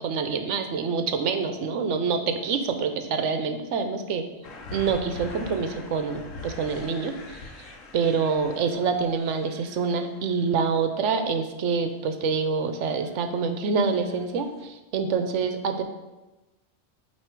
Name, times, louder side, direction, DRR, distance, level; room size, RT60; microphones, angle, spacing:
voice 1, 0.0-4.3 4.7-15.8, right 5 dB, 75° right, 7 dB, 0.9 m, -26 dB
sound 1, 4.4-10.8 12.9-13.4 13.8-14.3 14.6-14.7, left 3 dB, 85° left, 1.1 m, -43 dB
8.9 x 3.1 x 4.5 m, 1.1 s
omnidirectional pair, 1.3 m